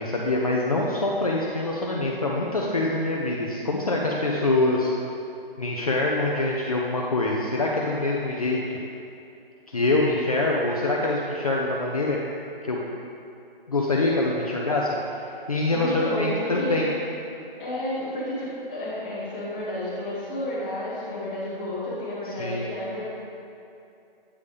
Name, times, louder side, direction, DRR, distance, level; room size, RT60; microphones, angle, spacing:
voice 1, 0.0-4.9 5.6-8.6 9.7-12.2 12.6-12.8 13.7-15.2 15.5-16.9 22.3-22.7, left 2 dB, 40° left, -3 dB, 0.5 m, -25 dB
voice 2, 15.7-16.8 17.6-23.1, left 1 dB, 10° left, -10 dB, 0.8 m, -31 dB
8.2 x 3.5 x 5.0 m, 2.7 s
hypercardioid pair, 170°, 30 cm